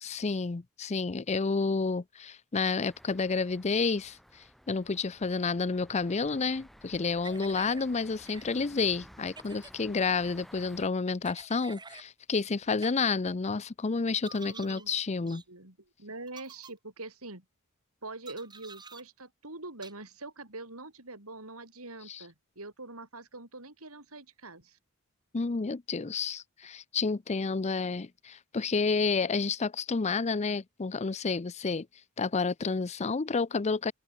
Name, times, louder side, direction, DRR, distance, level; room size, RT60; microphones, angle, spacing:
voice 1, 0.0-15.4 22.1-22.2 25.3-31.9 32.2-33.9, left 4 dB, 30° left, 0.5 m, -30 dB
sound 1, 2.8-10.9, equal, ahead, 4.6 m, -55 dB
sound 2, 7.2-7.9 8.3-8.4 9.3-9.7 11.3-12.1 12.8-12.9 14.2-14.9 15.3-15.4 16.3-16.7 18.3-19.0 19.8-19.9, right 4 dB, 20° right, 4.4 m, -48 dB
voice 2, 14.4-14.9 15.2-17.4 18.0-24.8, right 2 dB, 75° right, 6.5 m, -44 dB
open air
head